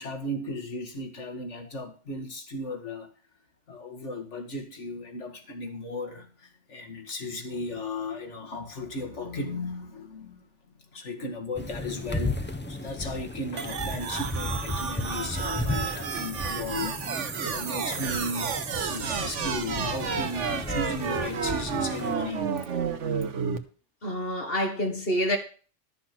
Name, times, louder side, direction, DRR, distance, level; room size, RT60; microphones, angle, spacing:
voice 1, 0.0-3.1 3.7-10.5 10.9-18.5 18.9-22.5, left 2 dB, 80° left, 2.2 m, -35 dB
sound 1, 11.6-22.1, left 2 dB, 10° left, 0.9 m, -35 dB
sound 2, 13.6-23.6, right 6 dB, 80° right, 1.4 m, -31 dB
voice 2, 24.0-25.4, equal, 50° left, 2.1 m, -27 dB
12.0 x 6.7 x 6.0 m
omnidirectional pair, 1.2 m